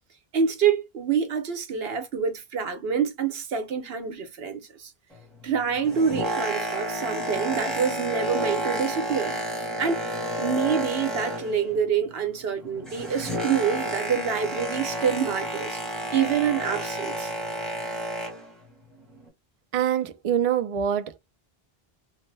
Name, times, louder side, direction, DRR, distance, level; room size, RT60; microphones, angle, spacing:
voice 1, 0.3-4.9 5.4-9.4 9.8-10.0 10.4-15.8 16.1-17.3, right 7 dB, 75° right, 1.0 m, -26 dB
Boat Water vehicle, 5.7-11.8 12.1-18.5 19.2-19.3, right 1 dB, ahead, 1.1 m, -31 dB
voice 2, 19.7-21.2, right 9 dB, 55° right, 0.4 m, -25 dB
3.2 x 2.1 x 3.2 m
omnidirectional pair, 1.0 m